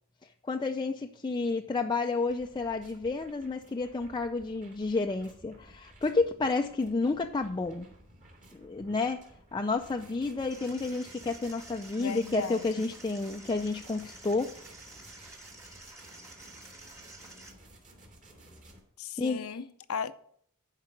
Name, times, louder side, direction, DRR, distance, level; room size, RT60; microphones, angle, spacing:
voice 1, 0.5-7.9 8.5-9.2 9.5-14.5 19.2-19.5, left 3 dB, 20° left, 0.4 m, -30 dB
sound 1, 2.3-18.8, right 1 dB, 35° right, 2.5 m, -55 dB
sound 2, 10.5-17.5, right 2 dB, 15° right, 1.8 m, -50 dB
voice 2, 11.9-12.9 19.0-20.1, left 6 dB, 75° left, 0.6 m, -37 dB
11.0 x 4.9 x 7.1 m
head